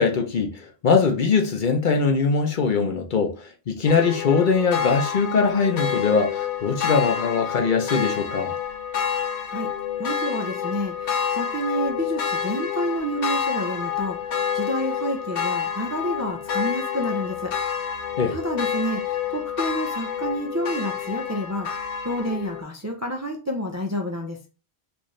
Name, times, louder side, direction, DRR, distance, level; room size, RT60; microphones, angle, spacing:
voice 1, 0.0-8.5 18.2-18.3, left 5 dB, 55° left, 0.8 m, -22 dB
sound 1, 3.9-22.6, left 8 dB, 85° left, 0.9 m, -28 dB
voice 2, 10.0-14.2 14.5-17.5 18.3-21.7 22.0-24.4, equal, 25° right, 0.4 m, -29 dB
4.4 x 2.6 x 3.1 m
omnidirectional pair, 1.1 m